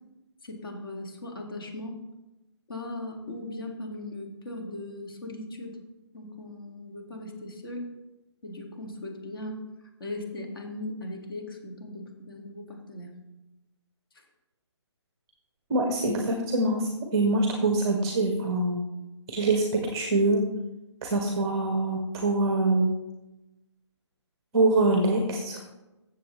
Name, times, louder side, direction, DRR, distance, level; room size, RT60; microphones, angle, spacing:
voice 1, 0.4-2.0 2.7-5.8 6.1-7.9 8.4-9.6 10.0-13.2, left 1 dB, 50° left, 1 dB, 2.2 m, -38 dB
voice 2, 15.7-18.8 19.3-20.4 21.0-22.9 24.5-25.8, right 2 dB, 10° right, 2 dB, 0.7 m, -24 dB
14.5 x 7.1 x 3.2 m, 1.0 s
hypercardioid pair, 175°, 15 cm